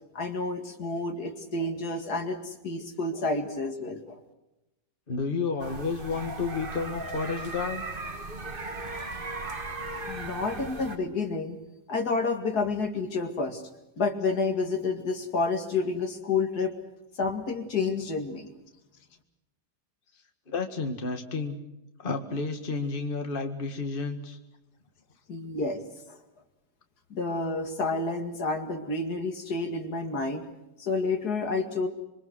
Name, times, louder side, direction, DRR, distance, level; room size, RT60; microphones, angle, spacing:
voice 1, 0.1-4.2 10.1-11.6 11.9-13.6 14.0-16.7 17.2-18.5 25.3-25.8 26.1-26.2 27.1-30.5 30.8-31.9, left 3 dB, 70° left, 6 dB, 2.6 m, -29 dB
voice 2, 5.1-7.8 20.5-21.6 22.0-24.4, left 4 dB, 30° left, 5 dB, 2.0 m, -31 dB
sound 1, 5.6-11.0, right 2 dB, 30° right, 1.8 m, -37 dB
26.0 x 24.0 x 6.2 m, 0.92 s
omnidirectional pair, 1.8 m